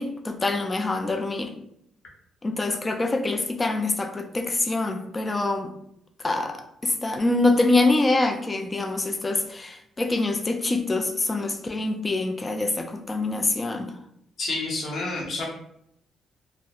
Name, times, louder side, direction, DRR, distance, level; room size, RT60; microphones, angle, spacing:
voice 1, 0.0-1.5 2.4-5.7 6.2-13.9, left 2 dB, 25° left, 6 dB, 0.3 m, -25 dB
voice 2, 14.4-15.4, left 2 dB, 65° left, -3 dB, 0.8 m, -29 dB
2.6 x 2.0 x 2.3 m, 0.74 s
cardioid pair, 90°, 0 cm